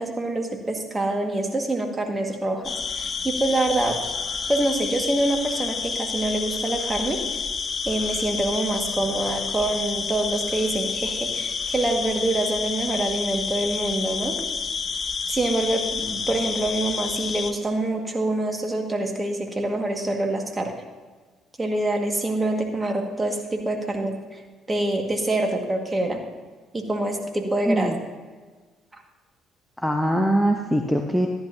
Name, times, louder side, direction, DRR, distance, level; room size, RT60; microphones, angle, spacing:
voice 1, 0.0-4.0 4.5-7.2 7.8-14.3 15.3-20.7 21.6-24.4 24.7-26.2 26.7-27.9 28.9-29.0, right 2 dB, 20° right, 3 dB, 1.9 m, -26 dB
sound 1, 2.6-17.5, left 5 dB, 45° left, 0.8 m, -29 dB
voice 2, 27.7-28.0 29.8-31.3, equal, ahead, 3 dB, 0.9 m, -22 dB
14.0 x 10.5 x 2.8 m, 1.4 s
hypercardioid pair, 60°, 0 cm